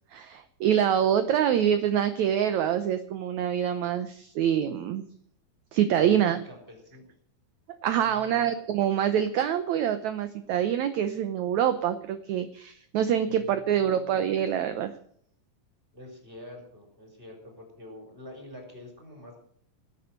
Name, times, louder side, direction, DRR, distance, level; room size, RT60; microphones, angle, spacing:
voice 1, 0.1-5.1 5.7-6.4 7.8-14.9, right 9 dB, 70° right, 10 dB, 1.8 m, -25 dB
voice 2, 6.0-7.1 8.0-8.5 13.3-14.2 15.9-19.4, left 1 dB, 15° right, 1 dB, 5.3 m, -47 dB
18.5 x 9.0 x 6.6 m, 0.63 s
omnidirectional pair, 4.2 m